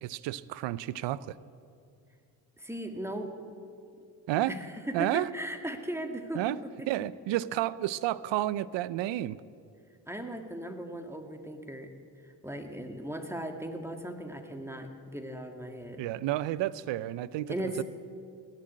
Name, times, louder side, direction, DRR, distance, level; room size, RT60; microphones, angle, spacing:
voice 1, 0.0-1.3 4.3-4.6 4.9-5.3 6.3-6.6 6.9-9.4 16.0-17.8, right 14 dB, 75° right, 20 dB, 0.6 m, -31 dB
voice 2, 2.6-3.3 4.5-6.9 10.1-11.9 12.2-16.1 17.5-17.8, right 1 dB, 5° right, 5 dB, 2.0 m, -37 dB
18.0 x 7.6 x 8.7 m, 2.4 s
supercardioid pair, 60°, 44 cm